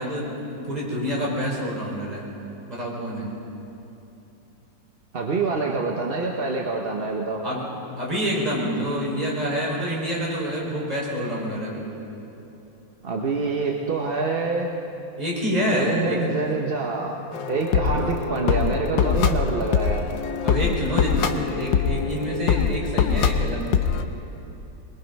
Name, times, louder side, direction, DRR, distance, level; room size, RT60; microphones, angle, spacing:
voice 1, 0.0-2.2 2.7-3.3 7.4-7.7 8.0-11.8 15.2-16.2 17.9-18.0 20.4-23.9, equal, 20° right, -5 dB, 5.3 m, -27 dB
voice 2, 5.1-7.4 13.0-14.7 15.7-20.0, right 3 dB, 35° right, 0 dB, 1.0 m, -26 dB
sound 1, 17.3-24.0, left 7 dB, 70° left, 1.5 m, -23 dB
22.5 x 22.0 x 5.4 m, 3.0 s
omnidirectional pair, 2.2 m